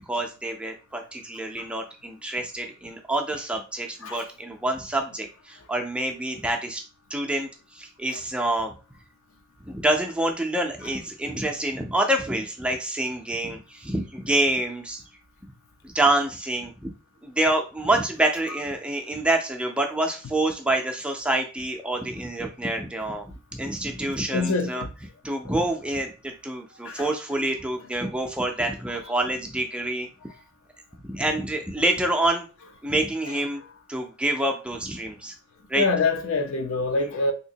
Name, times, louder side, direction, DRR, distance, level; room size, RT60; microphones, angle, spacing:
voice 1, 0.0-6.8 7.1-8.7 9.7-15.0 15.8-16.9 17.2-24.8 25.2-30.1 31.0-32.4 32.8-33.6 33.9-35.3 35.7-35.9, right 1 dB, 5° right, 0.3 m, -27 dB
voice 2, 24.3-24.9 26.8-27.1 35.8-37.3, left 3 dB, 65° left, 0.6 m, -25 dB
3.6 x 2.8 x 2.7 m
head